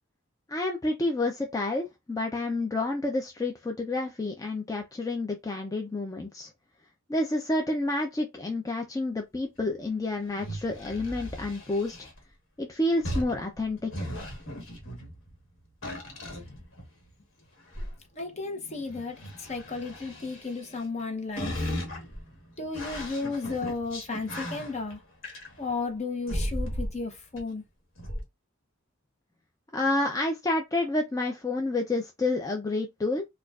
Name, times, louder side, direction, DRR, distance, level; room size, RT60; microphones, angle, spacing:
voice 1, 0.5-6.5 7.1-12.1 12.6-14.1 29.7-33.2, left 2 dB, 15° left, 0.4 m, -29 dB
sound 1, 10.2-12.2 13.0-15.4 15.8-17.1 17.6-17.9 18.9-21.0 21.4-25.8 26.3-27.0 27.4-27.5 28.0-28.2, equal, 70° left, 1.3 m, -36 dB
voice 2, 18.1-22.1 22.6-25.0 25.6-27.6, left 3 dB, 35° left, 0.8 m, -34 dB
4.3 x 2.4 x 2.3 m
head